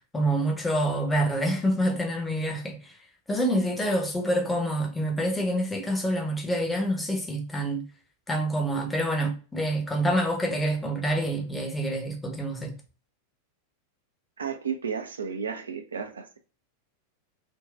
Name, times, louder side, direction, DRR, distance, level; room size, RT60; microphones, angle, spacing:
voice 1, 0.1-2.9 3.3-7.8 8.3-12.7, right 1 dB, 10° left, 0.8 m, -27 dB
voice 2, 14.4-16.4, right 6 dB, 70° right, 0.5 m, -33 dB
3.8 x 2.3 x 2.4 m
figure-of-eight pair, 90°, 0 cm